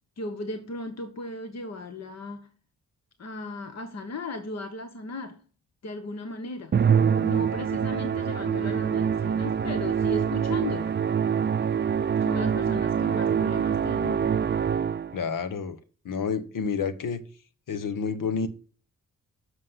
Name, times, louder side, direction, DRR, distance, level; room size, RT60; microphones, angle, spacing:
voice 1, 0.2-2.5 3.2-5.4 5.8-6.8 7.2-11.0 12.2-14.3, left 2 dB, 55° left, 1.3 m, -36 dB
Musical instrument, 6.7-15.2, right 7 dB, 35° right, 0.5 m, -25 dB
voice 2, 15.1-15.8 16.0-17.2 17.7-18.5, left 5 dB, 75° left, 1.2 m, -29 dB
7.5 x 6.4 x 5.8 m
cardioid pair, 65°, 32 cm